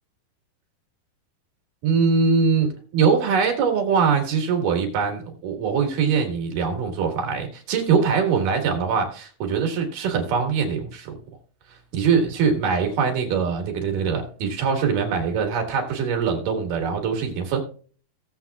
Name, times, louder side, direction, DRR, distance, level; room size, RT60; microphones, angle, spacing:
voice 1, 1.8-11.2 11.9-17.6, right 5 dB, 70° right, 3 dB, 3.3 m, -22 dB
17.5 x 7.5 x 2.4 m, 0.42 s
omnidirectional pair, 4.1 m